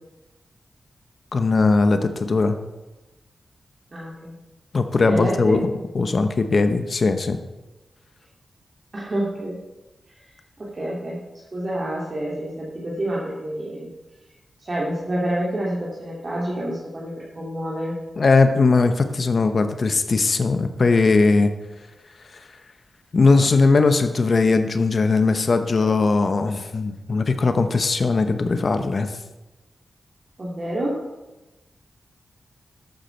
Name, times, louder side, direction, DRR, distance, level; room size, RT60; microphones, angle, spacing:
voice 1, 1.3-2.6 4.7-7.4 18.2-21.5 23.1-29.1, left 3 dB, 60° left, 8 dB, 0.9 m, -19 dB
voice 2, 3.9-4.3 5.0-5.6 8.9-9.6 10.1-10.2 10.6-13.9 14.6-18.0 30.4-31.0, right 1 dB, 45° right, -5 dB, 2.4 m, -28 dB
12.0 x 8.1 x 4.5 m, 1.1 s
cardioid pair, 50°, 0 cm